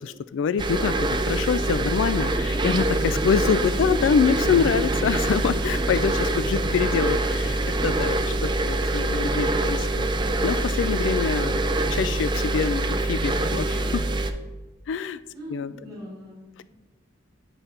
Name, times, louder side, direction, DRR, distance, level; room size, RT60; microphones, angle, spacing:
voice 1, 0.0-10.1 10.4-11.6 11.9-14.1 14.9-15.2 15.5-15.7, left 6 dB, 70° left, 15 dB, 0.3 m, -25 dB
sound 1, 0.6-14.3, right 2 dB, 25° right, 0.5 m, -25 dB
sound 2, 2.2-7.9, equal, 20° left, 1.4 m, -38 dB
voice 2, 15.3-16.6, equal, ahead, -7 dB, 2.6 m, -43 dB
10.0 x 5.2 x 4.3 m, 1.2 s
head